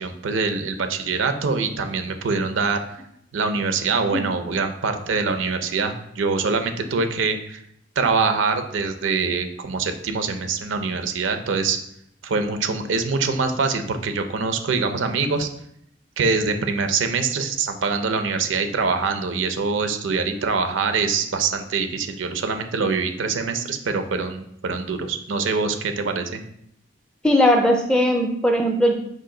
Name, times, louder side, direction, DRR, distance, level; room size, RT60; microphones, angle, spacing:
voice 1, 0.0-2.8 3.3-7.6 8.0-11.8 12.2-15.5 16.2-26.4, right 4 dB, 75° right, 8 dB, 0.5 m, -24 dB
voice 2, 27.2-28.9, equal, 5° left, 3 dB, 0.4 m, -18 dB
4.9 x 2.5 x 3.7 m, 0.73 s
head